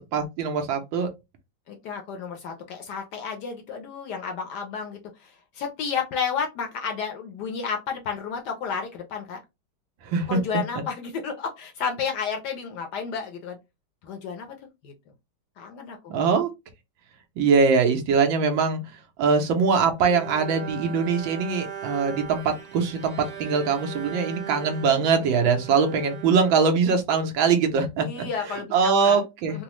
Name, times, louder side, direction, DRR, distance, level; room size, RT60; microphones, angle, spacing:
voice 1, 0.1-1.1 10.0-10.4 16.1-16.5 17.4-18.8 19.2-28.3 28.7-29.6, right 5 dB, 75° right, 1.5 m, -22 dB
voice 2, 1.7-9.4 10.3-13.6 14.0-14.5 14.8-14.9 15.6-16.2 28.0-29.2 29.5-29.6, left 6 dB, 70° left, 1.1 m, -32 dB
Bowed string instrument, 20.0-27.4, right 8 dB, 50° right, 0.8 m, -39 dB
4.0 x 2.0 x 2.9 m
omnidirectional pair, 2.2 m